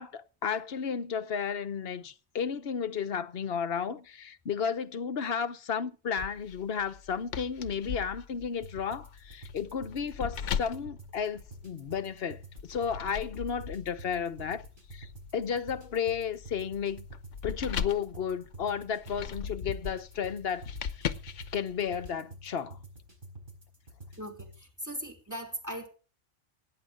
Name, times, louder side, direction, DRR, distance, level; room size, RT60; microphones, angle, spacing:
voice 1, 0.0-14.6 14.9-17.0 17.4-20.7 21.0-21.1 21.5-22.8, left 7 dB, 60° left, 1.1 m, -33 dB
sound 1, 6.2-12.0 12.6-22.1, left 7 dB, 80° left, 1.2 m, -39 dB
sound 2, 8.6-24.6, right 1 dB, 45° right, 4.8 m, -50 dB
voice 2, 24.2-25.9, equal, 15° right, 3.4 m, -39 dB
17.0 x 9.2 x 5.0 m
omnidirectional pair, 1.2 m